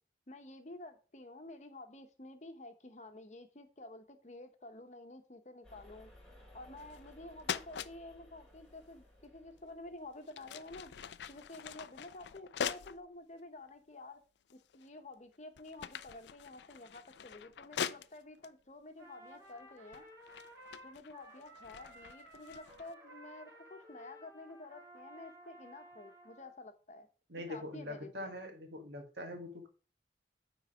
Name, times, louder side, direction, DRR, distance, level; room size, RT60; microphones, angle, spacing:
voice 1, 0.3-6.1 6.5-10.9 11.3-14.2 14.5-20.0 20.8-27.1 27.5-28.3, left 2 dB, 40° left, 7 dB, 0.9 m, -50 dB
sound 1, 5.6-10.2, left 1 dB, 5° left, 1.9 m, -59 dB
sound 2, 6.8-7.1 7.4-7.9 9.6-9.7 10.2-13.0 13.7-13.8 14.5-15.0 15.4-18.5 19.4-19.6 19.9-22.9, left 8 dB, 75° left, 0.4 m, -43 dB
Trumpet, 19.0-26.5, equal, 15° right, 2.9 m, -55 dB
voice 2, 27.3-29.7, left 1 dB, 75° right, 5 dB, 1.7 m, -43 dB
9.4 x 4.0 x 4.9 m, 0.36 s
head